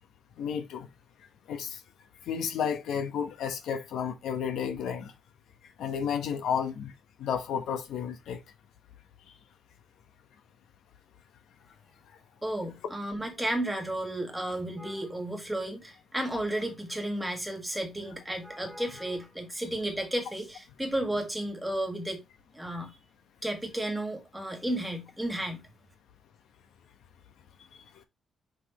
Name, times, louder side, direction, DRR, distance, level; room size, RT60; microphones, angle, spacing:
voice 1, 0.4-0.9 1.5-1.8 2.3-5.1 5.8-6.9 7.2-8.4 22.7-22.8 27.9-28.0, left 7 dB, 90° left, 1.1 m, -32 dB
voice 2, 12.4-22.2 22.5-22.9 23.4-25.6, right 1 dB, 5° right, 1.8 m, -33 dB
6.3 x 5.4 x 3.0 m
cardioid pair, 150°, 0 cm